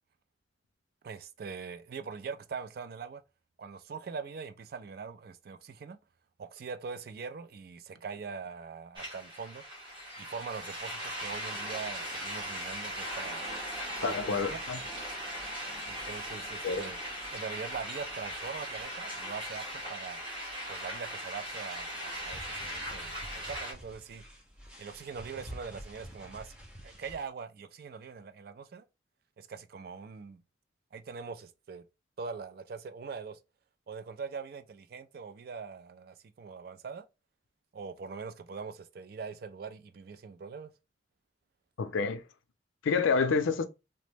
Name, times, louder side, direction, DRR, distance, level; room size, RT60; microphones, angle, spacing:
voice 1, 1.0-3.2 3.6-6.0 6.4-9.6 10.2-13.5 14.0-14.6 15.9-17.0 17.3-20.2 20.7-24.2 24.8-26.5 26.8-28.9 29.4-30.4 30.9-31.8 32.2-33.4 33.9-37.1 37.7-40.7, right 5 dB, 50° right, 0.3 m, -42 dB
sound 1, 9.0-23.7, equal, 25° right, 1.2 m, -39 dB
voice 2, 14.0-14.8 16.6-16.9 41.8-42.2 42.8-43.7, left 5 dB, 90° left, 0.4 m, -28 dB
sound 2, 22.1-27.3, equal, 5° right, 0.6 m, -48 dB
2.9 x 2.1 x 3.2 m
head